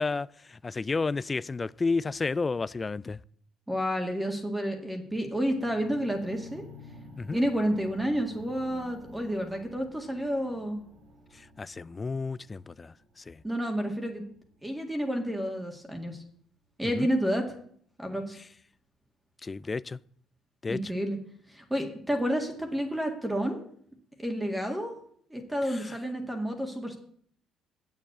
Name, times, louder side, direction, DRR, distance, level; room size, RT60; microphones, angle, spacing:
voice 1, 0.0-3.2 7.2-7.4 11.3-13.4 16.8-17.1 19.4-20.0 20.6-20.8 25.7-26.0, left 4 dB, 25° left, 0.4 m, -32 dB
voice 2, 3.7-6.6 7.3-10.8 13.4-14.2 14.6-16.2 16.8-17.5 18.0-18.4 20.7-21.2 21.5-23.6 24.2-24.9 25.3-27.0, equal, 10° right, 1.9 m, -30 dB
sound 1, 5.4-15.4 16.1-16.2, left 2 dB, 65° right, 3.4 m, -51 dB
7.8 x 7.3 x 8.5 m
cardioid pair, 95°, 0 cm